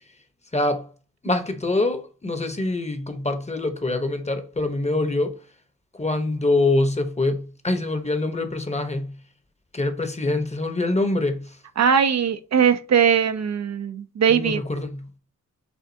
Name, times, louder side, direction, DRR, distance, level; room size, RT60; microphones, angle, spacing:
voice 1, 0.5-0.9 1.2-5.3 6.0-9.1 9.7-11.5 14.3-15.2, left 2 dB, 20° left, 0.9 m, -24 dB
voice 2, 11.8-14.6, right 7 dB, 60° right, 0.5 m, -20 dB
6.9 x 2.5 x 2.7 m
cardioid pair, 60°, 31 cm